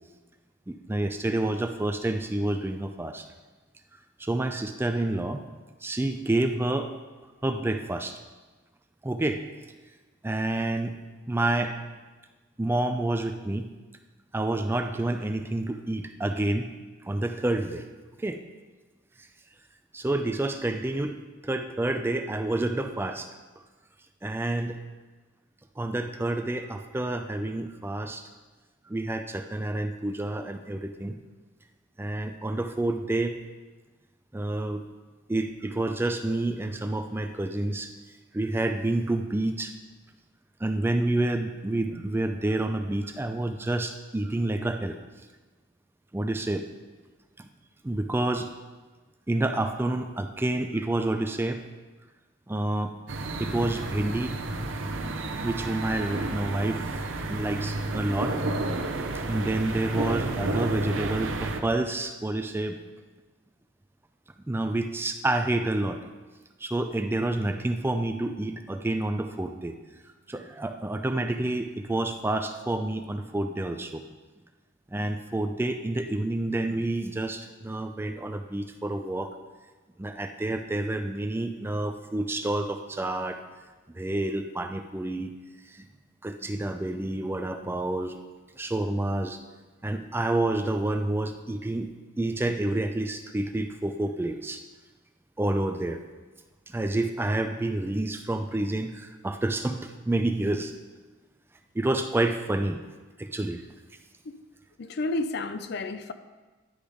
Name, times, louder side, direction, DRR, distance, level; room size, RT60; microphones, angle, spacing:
voice 1, 0.7-3.3 4.2-5.5 5.8-6.9 7.4-8.2 9.0-9.4 10.2-10.9 11.3-11.8 12.6-13.7 14.3-16.7 17.0-17.8 18.2-18.4 19.2-19.3 19.9-21.2 21.4-23.3 24.2-24.8 25.8-28.3 28.9-31.2 32.0-33.4 34.3-34.8 35.3-37.9 38.3-39.7 40.6-45.0 46.1-46.6 47.4-47.5 47.8-48.5 49.3-51.6 52.5-52.9 53.4-54.3 55.4-56.8 57.3-58.4 59.1-62.8 64.5-66.0 66.6-70.0 70.3-74.0 74.9-79.3 80.0-83.4 83.9-85.3 85.7-85.9 86.2-88.2 88.5-89.4 89.8-91.9 92.2-94.6 95.4-96.0 96.7-100.7 101.7-102.8 103.2-103.6, right 2 dB, 10° right, 0.3 m, -28 dB
sound 1, 53.1-61.6, right 2 dB, 70° right, 0.7 m, -31 dB
voice 2, 104.8-106.1, left 2 dB, 55° left, 0.4 m, -31 dB
10.5 x 4.9 x 5.2 m
head